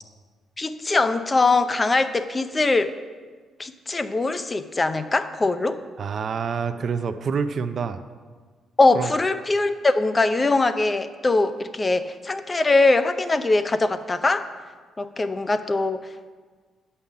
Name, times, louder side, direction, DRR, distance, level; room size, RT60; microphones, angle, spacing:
voice 1, 0.6-2.9 3.6-5.8 8.8-14.5 15.0-16.1, left 3 dB, 25° left, 11 dB, 0.6 m, -22 dB
voice 2, 6.0-8.0 8.9-9.1, right 6 dB, 50° right, 10 dB, 0.5 m, -27 dB
8.7 x 5.6 x 7.1 m, 1.5 s
cardioid pair, 90°, 0 cm